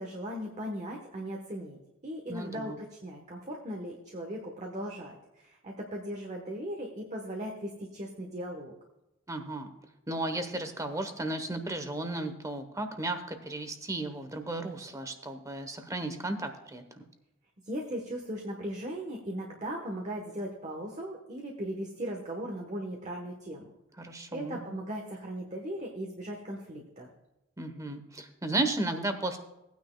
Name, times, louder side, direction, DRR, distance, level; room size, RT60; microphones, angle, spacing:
voice 1, 0.0-8.7 17.6-23.7 24.3-27.1, equal, 35° right, 0 dB, 1.2 m, -38 dB
voice 2, 2.3-2.8 9.3-9.7 10.1-16.8 24.0-24.6 27.6-29.4, right 2 dB, 15° right, 7 dB, 1.0 m, -34 dB
17.5 x 9.4 x 2.3 m, 0.93 s
head